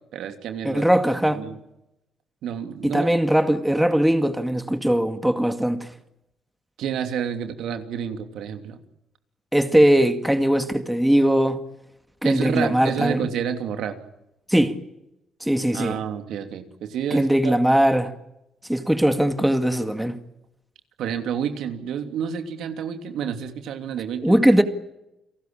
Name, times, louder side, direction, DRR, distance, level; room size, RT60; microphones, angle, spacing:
voice 1, 0.1-0.9 1.3-1.6 2.4-3.1 6.8-8.8 12.2-14.0 15.7-17.5 21.0-24.6, right 8 dB, 80° right, 2.9 m, -29 dB
voice 2, 0.6-1.4 2.8-5.9 9.5-11.6 12.2-13.3 14.5-14.8 15.4-16.0 17.1-18.1 18.7-20.2 24.2-24.6, right 1 dB, 5° right, 2.1 m, -20 dB
29.5 x 18.5 x 8.8 m
cardioid pair, 90°, 0 cm